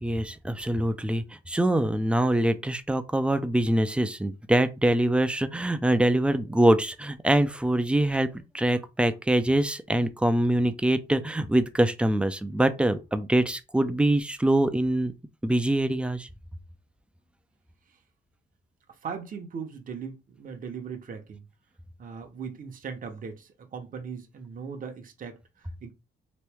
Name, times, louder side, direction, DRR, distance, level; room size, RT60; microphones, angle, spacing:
voice 1, 0.0-8.3 8.5-15.1 15.4-16.3, right 1 dB, 5° right, 0.4 m, -24 dB
voice 2, 18.9-21.4 22.0-25.9, right 6 dB, 45° right, 0.8 m, -39 dB
3.0 x 2.6 x 3.4 m
cardioid pair, 90°, 20 cm